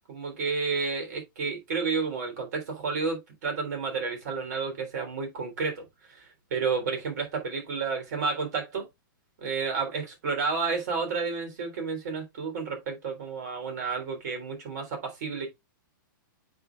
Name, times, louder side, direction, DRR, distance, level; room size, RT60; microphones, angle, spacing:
voice 1, 0.1-5.8 6.1-8.9 9.4-15.5, right 5 dB, 55° right, 3.4 m, -31 dB
8.0 x 5.5 x 2.4 m
hypercardioid pair, 170°, 11 cm